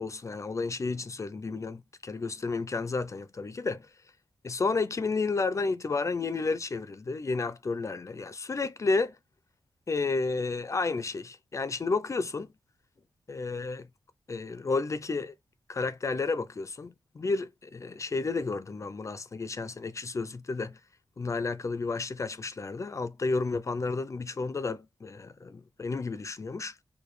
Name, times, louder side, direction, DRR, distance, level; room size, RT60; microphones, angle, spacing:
voice 1, 0.0-3.9 4.4-9.2 9.9-12.5 13.3-13.9 14.3-15.3 15.7-20.8 21.2-26.7, left 3 dB, 40° left, 0.4 m, -31 dB
4.6 x 2.2 x 3.2 m
wide cardioid pair, 95°, 8 cm